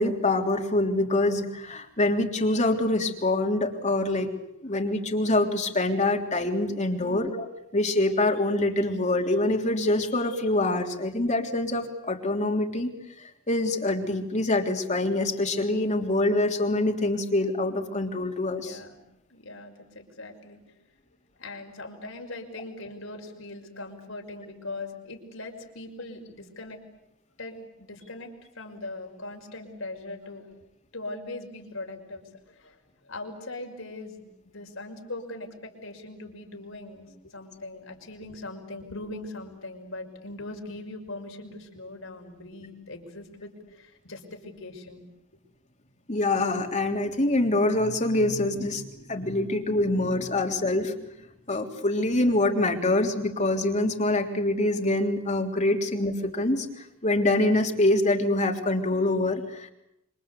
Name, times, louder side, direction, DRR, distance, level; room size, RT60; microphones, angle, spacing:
voice 1, 0.0-4.3 4.6-7.4 7.7-12.9 13.2-18.8 46.1-50.9 51.5-59.7, left 2 dB, 35° left, 3 dB, 3.3 m, -25 dB
voice 2, 18.6-19.0 19.3-20.6 21.4-26.8 27.4-28.3 28.6-30.5 30.9-45.0, left 2 dB, 75° left, 3 dB, 5.8 m, -40 dB
27.5 x 25.5 x 8.4 m, 0.80 s
head